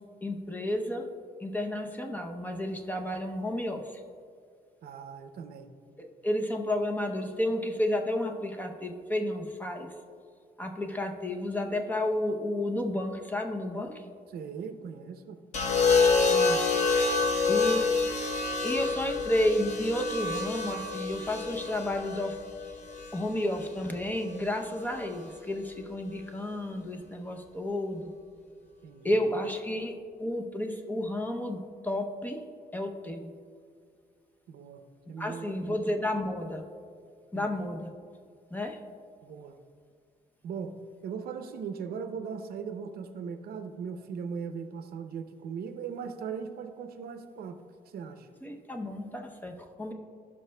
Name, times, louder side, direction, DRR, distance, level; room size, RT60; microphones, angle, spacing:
voice 1, 0.2-1.1 1.4-4.0 6.0-9.9 10.6-14.0 16.3-16.6 17.5-17.9 18.6-22.4 22.7-22.8 23.1-28.1 29.0-32.4 32.7-33.3 35.2-36.6 37.3-37.9 38.5-38.8 48.4-49.9, left 1 dB, 10° left, 4 dB, 0.6 m, -31 dB
voice 2, 4.8-5.7 14.3-15.4 28.8-29.2 34.5-34.8 35.1-35.8 37.3-37.7 39.2-39.6 40.4-40.8 41.0-47.6 47.9-48.3, right 6 dB, 80° right, 8 dB, 0.6 m, -39 dB
sound 1, 15.5-23.7 24.9-25.3, left 4 dB, 50° left, 1.0 m, -27 dB
16.5 x 5.5 x 2.2 m, 2.2 s
cardioid pair, 125°, 16 cm